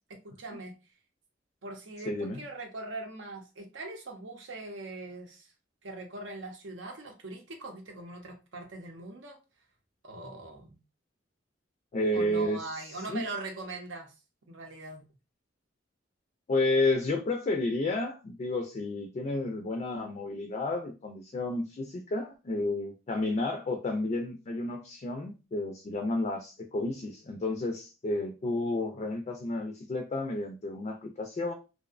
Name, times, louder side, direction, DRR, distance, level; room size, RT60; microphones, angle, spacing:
voice 1, 0.1-0.7 1.6-5.5 5.8-9.4 10.0-10.8 12.1-14.1 14.5-15.0, right 2 dB, 80° right, 0.6 m, -41 dB
voice 2, 2.0-2.4 11.9-12.6 13.1-13.2 16.5-31.5, left 2 dB, 35° left, 0.3 m, -31 dB
2.6 x 2.0 x 2.4 m
head